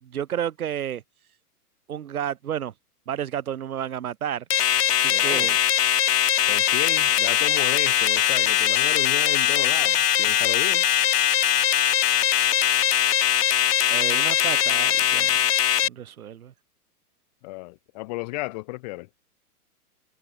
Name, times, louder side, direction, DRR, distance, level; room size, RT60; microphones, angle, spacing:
voice 1, 0.0-1.0 1.9-2.7 3.1-4.4 4.9-5.6 13.9-15.5 15.8-16.5, right 10 dB, 65° right, 3.8 m, -31 dB
sound 1, 4.5-15.9, left 10 dB, 80° left, 1.6 m, -21 dB
voice 2, 5.1-5.5 6.5-10.9 17.4-19.1, left 23 dB, 25° left, 2.8 m, -33 dB
hypercardioid pair, 175°, 47 cm